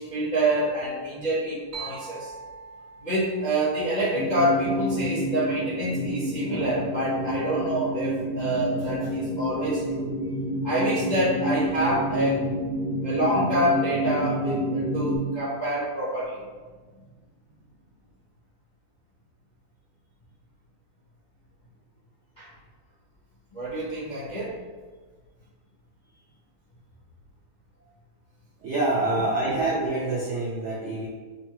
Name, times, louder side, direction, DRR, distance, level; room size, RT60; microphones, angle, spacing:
voice 1, 0.0-2.3 3.0-10.1 10.6-12.5 13.0-16.4 22.4-22.5 23.5-24.5, right 1 dB, 55° left, -11 dB, 0.4 m, -27 dB
sound 1, 1.7-5.4, right 5 dB, 65° right, 0.8 m, -44 dB
sound 2, 4.2-15.2, equal, 80° left, 1.4 m, -29 dB
voice 2, 28.6-31.1, right 2 dB, 90° right, -5 dB, 0.6 m, -26 dB
5.2 x 2.3 x 2.9 m, 1.4 s
omnidirectional pair, 2.0 m